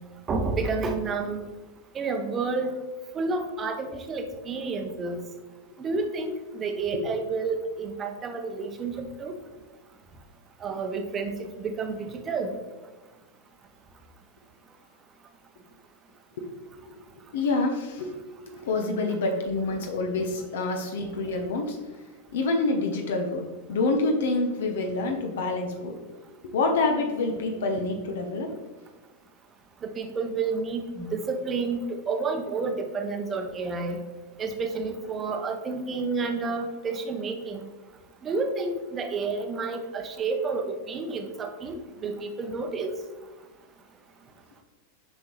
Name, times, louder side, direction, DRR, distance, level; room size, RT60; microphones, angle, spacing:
voice 1, 0.3-1.4 1.9-2.7 3.1-5.2 5.8-9.3 10.6-11.3 11.8-12.5 29.8-31.8 32.1-34.0 34.4-37.6 38.2-42.9, right 4 dB, 25° right, 6 dB, 0.7 m, -30 dB
voice 2, 17.3-18.1 18.7-21.8 22.3-23.4 23.7-25.9 26.4-28.5, left 3 dB, 60° left, 3 dB, 0.8 m, -27 dB
7.0 x 5.3 x 3.1 m, 1.2 s
figure-of-eight pair, 90°, 0 cm